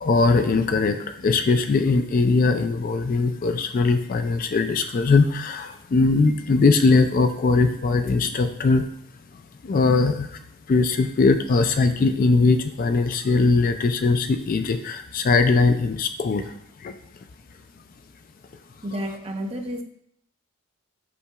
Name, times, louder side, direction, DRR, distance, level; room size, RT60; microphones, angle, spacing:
voice 1, 0.0-8.8 9.6-10.3 10.7-16.5 16.8-16.9, left 3 dB, 40° left, 8 dB, 0.3 m, -20 dB
voice 2, 18.8-19.8, equal, 25° right, 3 dB, 0.6 m, -30 dB
8.2 x 5.6 x 2.3 m, 0.71 s
head